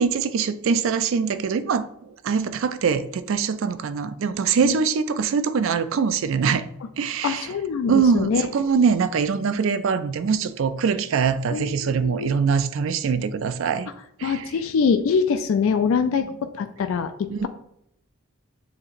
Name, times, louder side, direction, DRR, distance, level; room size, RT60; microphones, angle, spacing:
voice 1, 0.0-6.6 7.0-7.5 7.9-13.9 14.2-14.5 17.3-17.5, right 6 dB, 60° right, 12 dB, 0.3 m, -23 dB
voice 2, 7.2-8.4 11.5-12.3 14.2-16.3 16.5-17.5, left 6 dB, 70° left, 9 dB, 0.3 m, -24 dB
7.0 x 2.9 x 2.5 m, 0.75 s
head